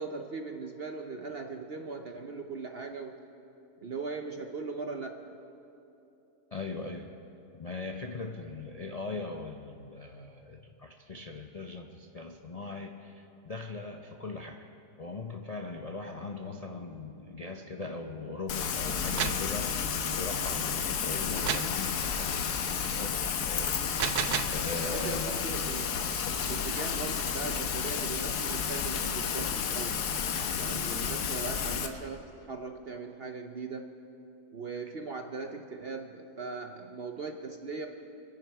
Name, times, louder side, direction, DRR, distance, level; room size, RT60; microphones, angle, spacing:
voice 1, 0.0-3.2 3.8-5.4 20.4-20.6 24.8-30.0 30.5-34.0 34.5-37.9, right 4 dB, 55° right, 5 dB, 0.7 m, -39 dB
voice 2, 6.5-7.1 7.5-14.7 15.0-19.7 20.1-22.5 22.8-25.4, left 3 dB, 45° left, 2 dB, 0.5 m, -40 dB
Rain, 18.5-31.9, left 7 dB, 80° left, 1.4 m, -31 dB
sound 1, 18.9-19.5 21.5-21.8 23.8-24.6, right 10 dB, 75° right, 1.2 m, -31 dB
27.5 x 10.5 x 4.7 m, 2.9 s
omnidirectional pair, 1.7 m